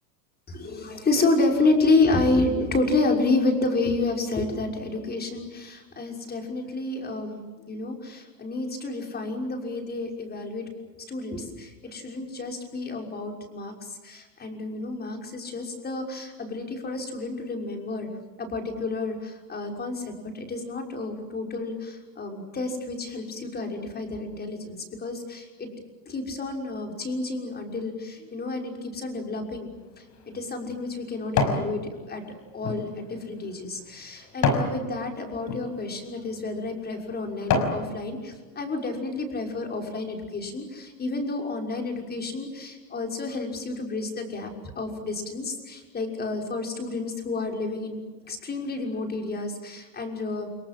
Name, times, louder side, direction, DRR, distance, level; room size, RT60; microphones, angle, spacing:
voice 1, 0.5-7.4 7.7-10.6 11.1-18.1 18.4-25.7 26.1-29.7 30.0-31.8 32.1-32.2 32.5-50.5, left 3 dB, 20° left, 3 dB, 6.0 m, -29 dB
sound 1, 29.8-31.7 32.2-34.8 35.4-35.6 36.3-36.5 37.0-37.8 38.3-38.4, left 4 dB, 35° left, 5.5 m, -28 dB
30.0 x 21.5 x 7.8 m, 1.3 s
supercardioid pair, 130°, 48 cm